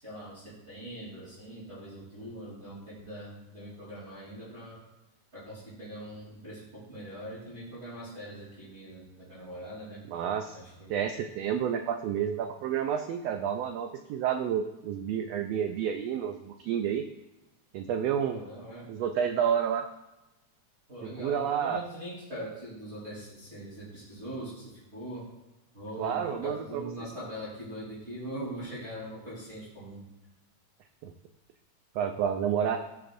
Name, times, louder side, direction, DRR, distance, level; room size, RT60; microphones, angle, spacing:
voice 1, 0.0-4.8 5.3-10.0 10.5-11.0 18.2-18.9 20.9-25.2 25.7-30.0, equal, 20° right, -9 dB, 3.3 m, -42 dB
voice 2, 10.1-10.6 10.9-17.0 17.7-18.4 18.9-19.8 21.2-21.8 26.0-27.1 31.0-31.1 31.9-32.8, right 8 dB, 85° right, 6 dB, 1.4 m, -30 dB
15.0 x 6.0 x 2.5 m, 1.0 s
omnidirectional pair, 3.4 m